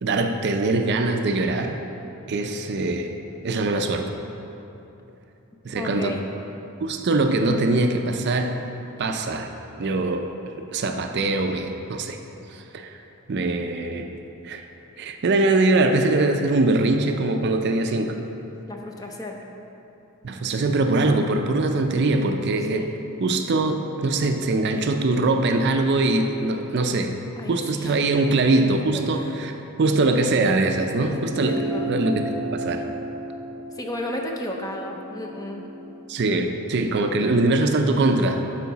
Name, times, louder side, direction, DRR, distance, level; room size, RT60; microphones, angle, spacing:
voice 1, 0.0-1.8 2.3-3.1 3.4-4.1 5.6-6.2 6.8-8.6 9.0-12.2 12.5-13.0 13.3-14.1 14.4-14.6 15.0-18.2 20.2-22.9 23.2-27.1 27.5-32.8 36.1-38.4, right 2 dB, 50° right, 5 dB, 0.4 m, -22 dB
voice 2, 5.7-6.2 18.7-19.4 22.7-22.9 27.4-27.9 28.9-29.4 31.1-31.9 33.8-35.7, left 1 dB, 15° left, 1 dB, 0.6 m, -33 dB
sound 1, 31.1-35.9, right 1 dB, 25° right, 1.9 m, -33 dB
11.5 x 4.6 x 4.0 m, 2.9 s
head